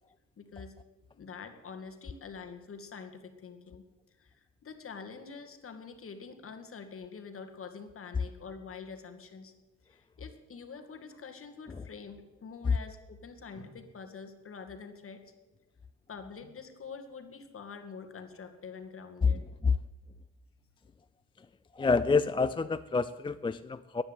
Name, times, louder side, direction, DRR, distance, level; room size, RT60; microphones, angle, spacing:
voice 1, 0.4-0.7 1.1-3.8 4.2-9.5 9.8-15.2 16.1-19.5, left 5 dB, 45° left, 7 dB, 2.1 m, -46 dB
voice 2, 19.2-19.7 21.4-21.5 21.7-24.0, left 4 dB, 15° left, 13 dB, 0.4 m, -28 dB
15.0 x 10.5 x 8.0 m, 1.1 s
cardioid pair, 90°, 30 cm